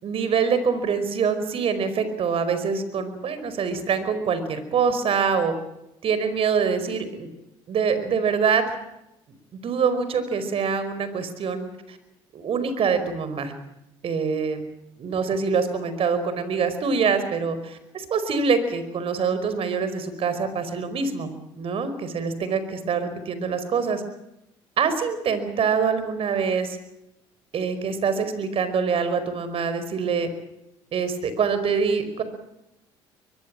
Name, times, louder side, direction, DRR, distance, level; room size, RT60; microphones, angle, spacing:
voice 1, 0.0-5.5 6.0-7.3 7.7-8.8 9.6-12.0 12.3-13.5 14.0-14.6 15.0-21.3 21.5-24.0 24.8-26.8 27.5-30.3 30.9-32.2, right 5 dB, 55° right, 11 dB, 5.0 m, -25 dB
23.5 x 21.5 x 7.6 m, 0.86 s
supercardioid pair, 75°, 12 cm